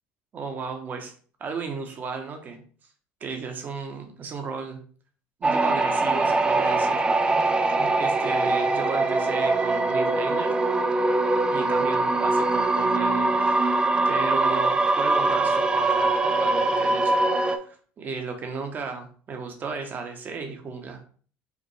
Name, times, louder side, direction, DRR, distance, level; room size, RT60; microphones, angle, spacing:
voice 1, 0.3-1.1 1.4-2.6 3.2-4.8 5.4-7.0 7.7-10.6 11.5-21.0, right 4 dB, 40° right, 4 dB, 1.1 m, -34 dB
sound 1, 5.4-17.6, right 2 dB, 20° right, 0.4 m, -22 dB
4.9 x 2.6 x 3.3 m, 0.44 s
supercardioid pair, 100°, 5 cm